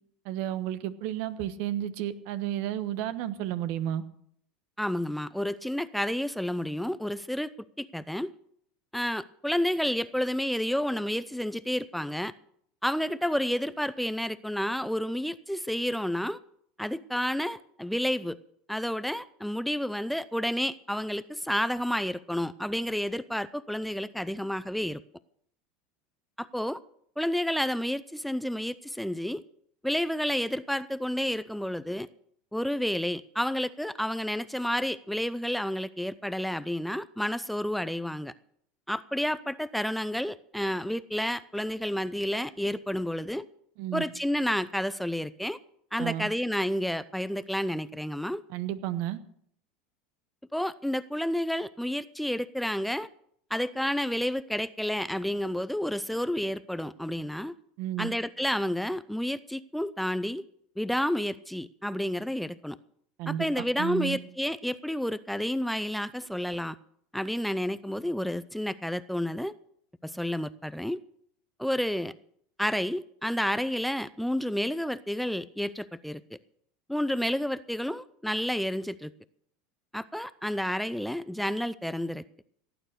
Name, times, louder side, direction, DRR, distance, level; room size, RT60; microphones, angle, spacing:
voice 1, 0.2-4.0 43.8-44.0 46.0-46.3 48.5-49.2 57.8-58.1 63.2-64.2, right 12 dB, 60° right, 13 dB, 1.2 m, -32 dB
voice 2, 4.8-7.5 7.8-8.3 8.9-12.3 12.8-16.4 16.8-18.4 18.7-25.0 26.4-26.8 27.2-29.4 29.8-32.1 32.5-38.3 38.9-43.5 43.9-45.6 45.9-48.4 50.5-53.1 53.5-57.5 58.0-60.4 60.8-62.8 63.3-66.8 67.1-69.6 70.0-71.0 71.6-72.1 72.6-76.2 76.9-79.1 79.9-82.2, equal, ahead, 16 dB, 0.5 m, -30 dB
17.0 x 9.1 x 6.7 m, 0.67 s
hypercardioid pair, 100°, 3 cm